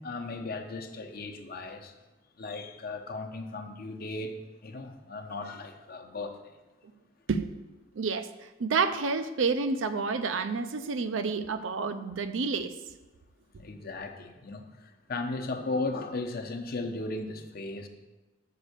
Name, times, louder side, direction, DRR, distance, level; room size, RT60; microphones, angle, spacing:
voice 1, 0.0-1.9 2.4-6.4 13.6-17.9, left 2 dB, 50° left, 6 dB, 0.8 m, -36 dB
voice 2, 8.0-8.3 8.6-12.7, right 4 dB, 85° right, 10 dB, 0.5 m, -29 dB
6.7 x 5.3 x 6.6 m, 1.1 s
head